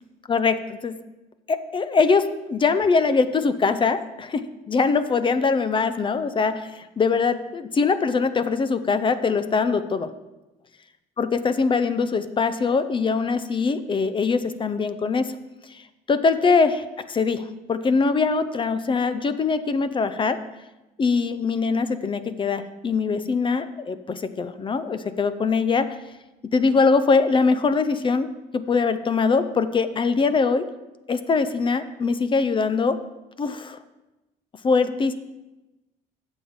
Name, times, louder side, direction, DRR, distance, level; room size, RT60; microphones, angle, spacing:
voice 1, 0.3-1.0 1.5-10.1 11.2-15.3 15.7-15.8 16.1-20.4 21.0-25.9 26.5-30.7 31.1-33.0 33.4-33.8 34.6-35.1, left 4 dB, 30° left, 12 dB, 0.5 m, -22 dB
13.5 x 7.1 x 3.7 m, 1.0 s
cardioid pair, 110°, 17 cm